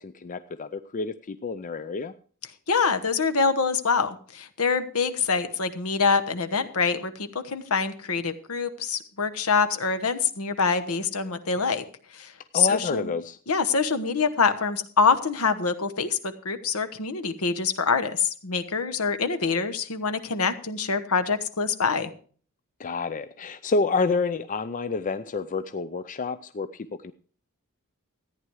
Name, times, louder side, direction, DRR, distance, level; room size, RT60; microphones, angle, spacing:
voice 1, 0.0-2.1 12.5-13.4 22.8-27.1, left 4 dB, 35° left, 11 dB, 0.4 m, -29 dB
voice 2, 2.7-11.8 12.1-13.1 13.5-22.1, left 5 dB, 70° left, 9 dB, 1.1 m, -25 dB
14.0 x 9.5 x 4.7 m, 0.44 s
head